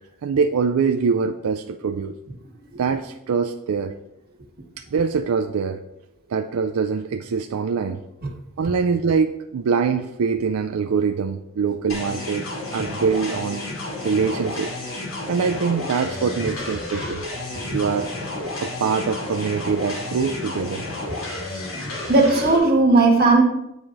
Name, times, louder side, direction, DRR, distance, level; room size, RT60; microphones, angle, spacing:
voice 1, 0.2-2.2 2.8-3.9 4.8-5.8 6.3-8.0 8.6-13.6 14.0-14.7 15.3-17.2 17.7-18.1 18.6-20.8, right 5 dB, 85° right, 0.4 m, -23 dB
sound 1, 11.9-22.6, left 2 dB, 70° left, 2.4 m, -31 dB
voice 2, 22.1-23.4, right 3 dB, 45° right, 1.5 m, -16 dB
8.6 x 4.8 x 3.9 m
head